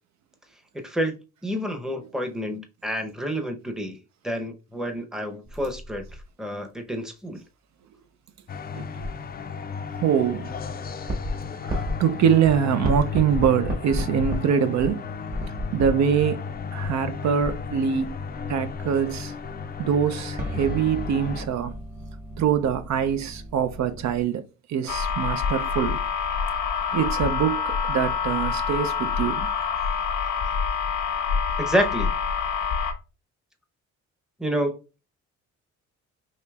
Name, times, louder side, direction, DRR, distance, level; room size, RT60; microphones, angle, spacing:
voice 1, 0.7-4.0 4.2-6.1 6.4-7.4 31.6-32.1 34.4-34.8, equal, ahead, 0.7 m, -28 dB
sound 1, 5.5-6.2 9.0-9.3 10.5-12.1 12.4-12.6 12.8-14.4 14.8-16.2 16.5-24.2, equal, 30° right, 1.1 m, -33 dB
sound 2, 8.5-21.5, left 5 dB, 30° left, 0.4 m, -34 dB
voice 2, 8.7-9.1 10.0-10.5 11.6-15.0 15.7-18.2 18.5-19.3 19.8-21.7 22.4-26.0 26.9-29.5, right 8 dB, 65° right, 0.5 m, -24 dB
sound 3, 24.9-32.9, left 6 dB, 80° left, 0.8 m, -26 dB
5.0 x 2.8 x 2.3 m
cardioid pair, 90°, 30 cm